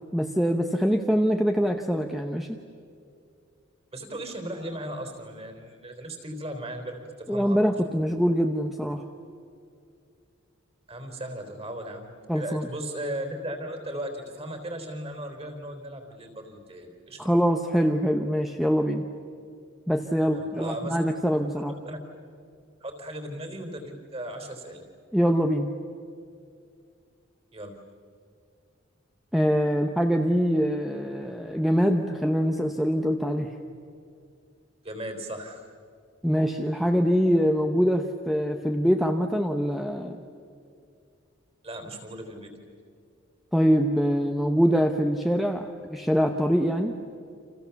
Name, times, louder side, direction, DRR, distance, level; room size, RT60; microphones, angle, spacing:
voice 1, 0.1-2.5 7.3-9.0 12.3-12.7 17.2-19.1 19.9-21.7 25.1-25.7 29.3-33.5 36.2-40.2 43.5-46.9, equal, ahead, 4 dB, 0.9 m, -24 dB
voice 2, 3.9-7.6 10.9-17.3 20.3-21.0 21.8-22.0 22.8-24.8 27.5-27.8 34.8-35.6 41.6-42.5, right 1 dB, 30° right, 5 dB, 3.7 m, -37 dB
30.0 x 27.5 x 7.1 m, 2.3 s
head